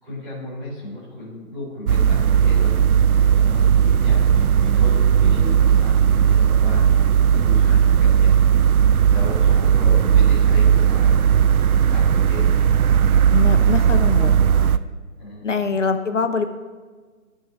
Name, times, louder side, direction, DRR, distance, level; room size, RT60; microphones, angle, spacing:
voice 1, 0.0-2.7 3.2-8.7 9.0-13.2 13.8-14.7 15.2-15.7, left 1 dB, ahead, -24 dB, 1.0 m, -35 dB
sound 1, 1.9-14.8, right 8 dB, 85° right, 0.6 m, -16 dB
voice 2, 13.3-14.4 15.4-16.5, left 4 dB, 60° left, 9 dB, 0.9 m, -23 dB
19.0 x 6.4 x 3.1 m, 1.4 s
hypercardioid pair, 175°, 42 cm